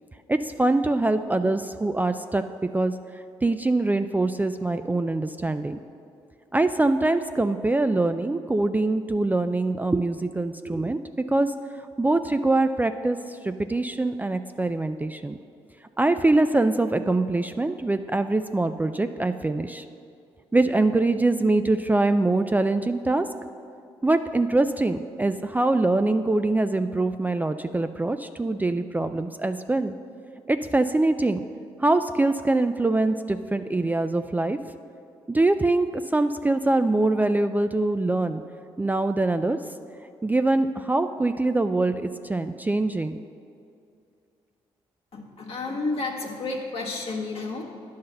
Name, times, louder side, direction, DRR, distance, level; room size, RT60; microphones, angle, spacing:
voice 1, 0.3-2.9 3.4-5.8 6.5-11.5 12.0-15.4 16.0-19.8 20.5-23.3 24.0-29.9 30.5-31.4 31.8-34.6 35.3-38.4 38.8-39.6 40.2-43.2, right 2 dB, 15° right, 9 dB, 0.3 m, -23 dB
voice 2, 45.1-47.6, left 3 dB, 55° left, -1 dB, 1.3 m, -31 dB
10.0 x 4.0 x 6.6 m, 2.5 s
supercardioid pair, 55°, 12 cm